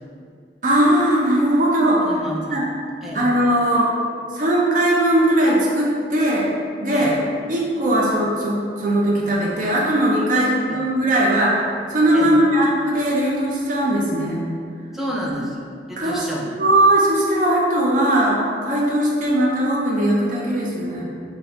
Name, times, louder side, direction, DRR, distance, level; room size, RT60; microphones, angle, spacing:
voice 1, 0.6-2.2 2.5-2.7 3.1-3.9 4.3-6.5 6.8-7.1 7.5-14.4 16.0-16.3 16.6-21.0, right 1 dB, 45° right, -4 dB, 0.6 m, -19 dB
voice 2, 2.0-2.6 3.0-3.3 6.9-7.2 10.3-10.8 12.1-12.3 14.9-16.5, equal, ahead, -4 dB, 0.5 m, -30 dB
5.2 x 2.1 x 4.5 m, 2.2 s
head